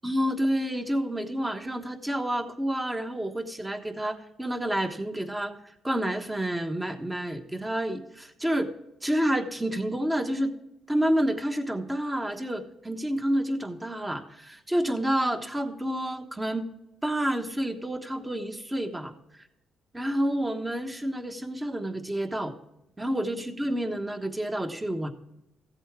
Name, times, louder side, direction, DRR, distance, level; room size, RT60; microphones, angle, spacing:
voice 1, 0.0-8.7 9.0-10.5 10.9-16.7 17.0-19.1 19.9-22.6 23.0-25.1, right 1 dB, 10° right, 6 dB, 1.2 m, -29 dB
14.5 x 8.0 x 3.7 m, 0.83 s
cardioid pair, 90°, 0 cm